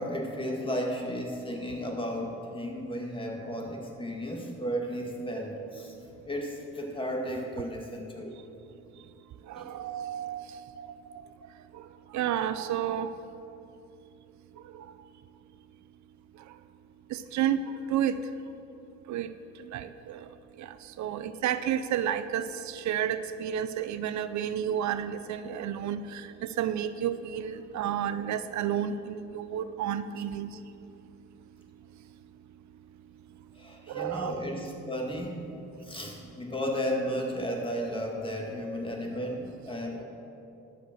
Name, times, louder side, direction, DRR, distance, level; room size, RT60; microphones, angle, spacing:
voice 1, 0.0-8.3 9.5-9.7 33.5-35.4 35.8-40.0, equal, 15° left, 0 dB, 1.9 m, -34 dB
voice 2, 9.5-10.6 12.1-13.1 17.1-17.6 17.9-18.1 19.1-19.3 19.7-20.2 20.6-20.7 21.0-26.2 26.6-30.5 33.9-34.3, right 10 dB, 70° right, 12 dB, 0.5 m, -31 dB
11.5 x 5.2 x 7.7 m, 2.8 s
cardioid pair, 90°, 30 cm